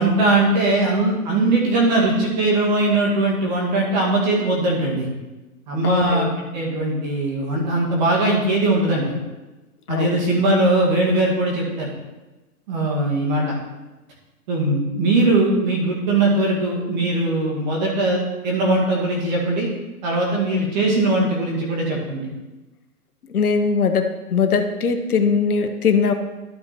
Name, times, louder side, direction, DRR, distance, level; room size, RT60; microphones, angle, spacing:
voice 1, 0.0-5.1 5.7-9.1 9.9-11.9 12.7-13.5 14.5-19.7 20.0-22.3, right 2 dB, 30° right, -2 dB, 2.2 m, -20 dB
voice 2, 5.8-6.3 9.9-10.2 23.3-26.1, left 5 dB, 70° left, 7 dB, 1.0 m, -20 dB
12.5 x 4.3 x 4.3 m, 1.1 s
hypercardioid pair, 160°, 47 cm